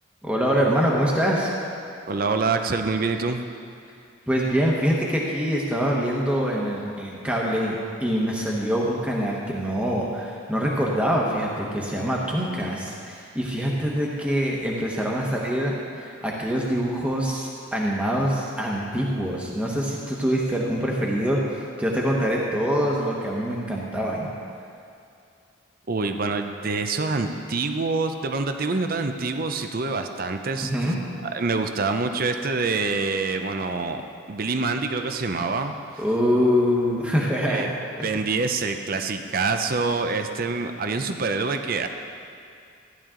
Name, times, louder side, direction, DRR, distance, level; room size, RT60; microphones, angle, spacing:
voice 1, 0.2-1.5 4.3-24.3 30.6-31.0 36.0-37.6 38.0-38.1, equal, 5° right, -3 dB, 1.2 m, -24 dB
voice 2, 2.1-3.4 25.9-30.9 31.2-34.0 34.3-36.0 37.5-37.7 38.0-41.9, right 4 dB, 45° right, 7 dB, 0.6 m, -26 dB
15.0 x 10.5 x 3.8 m, 2.5 s
head